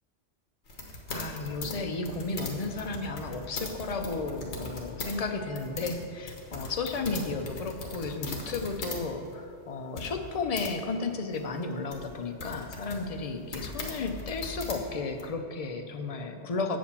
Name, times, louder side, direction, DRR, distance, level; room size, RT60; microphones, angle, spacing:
sound 1, 0.7-5.1 5.4-9.0 9.3-9.4 10.0-10.7 11.3-15.2, left 2 dB, 70° left, 1.4 m, -39 dB
voice 1, 1.1-16.8, left 3 dB, 40° left, 5 dB, 0.6 m, -33 dB
8.2 x 5.1 x 6.8 m, 2.3 s
omnidirectional pair, 1.2 m